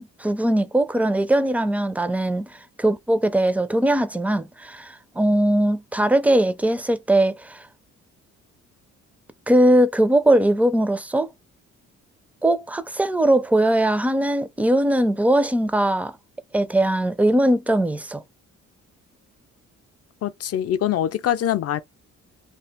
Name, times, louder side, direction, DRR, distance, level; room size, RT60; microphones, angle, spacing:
voice 1, 0.0-7.6 9.5-11.3 12.4-16.2 16.5-18.2, right 1 dB, 5° right, 0.4 m, -20 dB
voice 2, 20.2-21.8, left 11 dB, 55° left, 0.5 m, -23 dB
2.8 x 2.4 x 3.5 m
cardioid pair, 90°, 30 cm